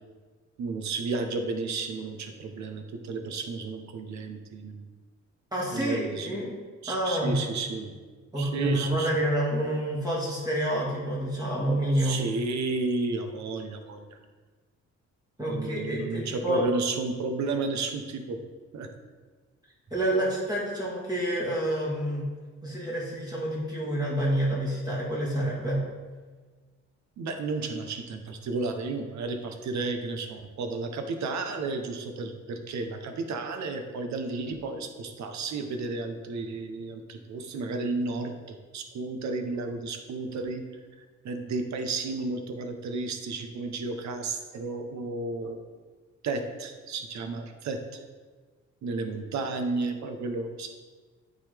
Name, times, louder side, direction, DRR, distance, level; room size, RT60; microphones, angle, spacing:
voice 1, 0.6-4.9 5.7-6.3 6.8-7.9 8.4-9.1 11.9-14.2 15.5-18.4 18.7-18.9 27.2-40.8 41.2-45.6 46.2-47.8 48.8-50.7, right 3 dB, 65° right, 6 dB, 0.9 m, -32 dB
voice 2, 5.5-6.6 6.9-7.4 8.3-12.2 15.4-16.7 19.9-22.3 22.6-25.8, right 1 dB, 15° right, -6 dB, 1.9 m, -28 dB
9.0 x 3.9 x 3.4 m, 1.4 s
cardioid pair, 90°, 30 cm